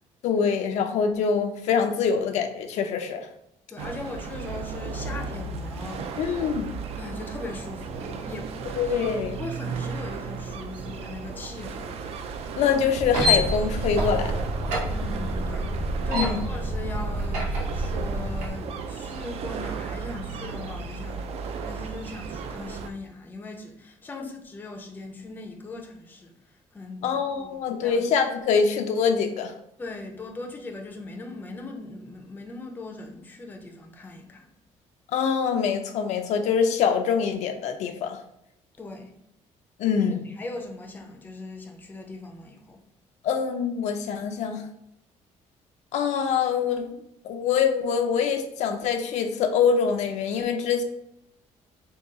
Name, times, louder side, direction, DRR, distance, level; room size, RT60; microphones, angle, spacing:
voice 1, 0.2-3.2 6.2-6.7 8.8-9.4 12.6-14.4 16.1-16.4 27.0-29.5 35.1-38.2 39.8-40.2 43.2-44.6 45.9-46.9 47.2-50.8, left 6 dB, 70° left, 5 dB, 0.5 m, -24 dB
voice 2, 3.7-6.3 7.0-12.0 14.9-26.3 26.7-28.0 29.8-34.5 38.8-39.1 40.0-42.8, left 2 dB, 15° left, 2 dB, 0.5 m, -39 dB
sound 1, 3.8-22.9, right 5 dB, 55° right, 0.4 m, -35 dB
sound 2, 13.0-18.5, equal, 75° right, 1.0 m, -27 dB
3.7 x 2.3 x 3.8 m, 0.79 s
cardioid pair, 165°, 12 cm